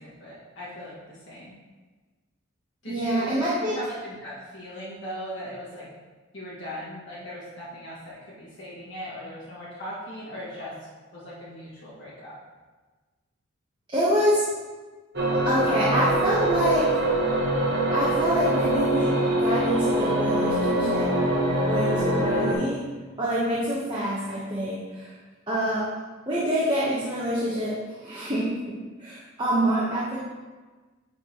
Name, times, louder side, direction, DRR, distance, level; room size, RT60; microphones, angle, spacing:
voice 1, 0.0-1.5 2.8-5.9 6.3-10.7 11.1-12.3, equal, 55° left, -9 dB, 1.8 m, -39 dB
voice 2, 2.9-3.8 13.9-14.4 15.4-16.9 17.9-21.1 21.7-22.8 23.2-25.1 25.5-25.9 26.3-28.5 29.0-30.2, equal, 20° right, -8 dB, 1.1 m, -26 dB
sound 1, 15.1-22.5, right 1 dB, 50° right, 1.0 m, -24 dB
9.6 x 4.1 x 3.0 m, 1.3 s
head